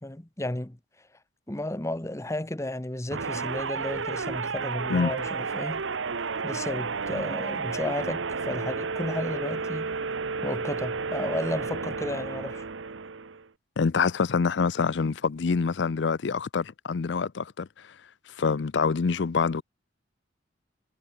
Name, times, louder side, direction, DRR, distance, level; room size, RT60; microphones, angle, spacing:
voice 1, 0.0-0.8 1.5-5.8 6.4-9.9 10.4-12.6, left 1 dB, 15° left, 1.0 m, -33 dB
sound 1, 3.1-13.5, right 4 dB, 90° right, 1.0 m, -32 dB
voice 2, 13.8-17.9 18.4-19.6, left 5 dB, 65° left, 0.5 m, -26 dB
head